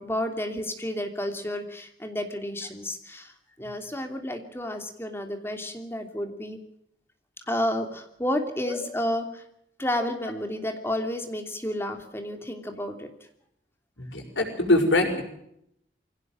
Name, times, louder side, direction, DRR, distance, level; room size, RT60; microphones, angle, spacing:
voice 1, 0.0-6.6 7.5-9.4 9.8-13.1, left 1 dB, 15° left, 5 dB, 2.9 m, -31 dB
voice 2, 14.0-15.2, left 2 dB, 90° left, 4 dB, 6.1 m, -23 dB
24.5 x 17.5 x 7.6 m, 0.75 s
head